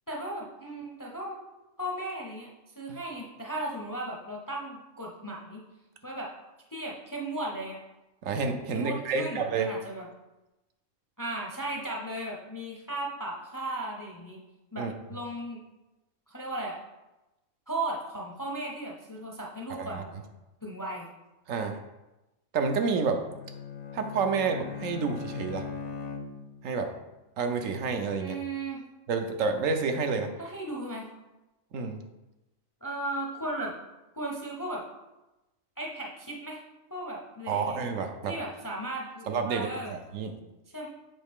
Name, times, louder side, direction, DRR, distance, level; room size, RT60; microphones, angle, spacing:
voice 1, 0.1-1.4 1.8-2.5 2.8-5.6 6.0-6.3 6.7-7.8 8.7-10.1 11.2-14.4 14.7-15.6 16.3-16.8 17.7-20.1 20.6-21.1 28.2-28.8 30.4-31.1 32.8-33.7 34.2-34.8 35.8-36.6 36.9-37.8 38.3-40.0 40.7-40.9, right 1 dB, 20° left, -1 dB, 0.6 m, -36 dB
voice 2, 8.2-9.7 14.8-14.9 19.8-20.0 21.5-21.8 22.5-23.2 23.9-25.7 26.6-26.9 27.4-28.4 29.1-30.3 31.7-32.0 37.5-38.3 39.3-40.3, right 5 dB, 75° right, 5 dB, 1.0 m, -29 dB
Bowed string instrument, 23.2-26.8, left 5 dB, 70° left, 0.4 m, -39 dB
7.2 x 4.7 x 3.6 m, 1.0 s
omnidirectional pair, 1.4 m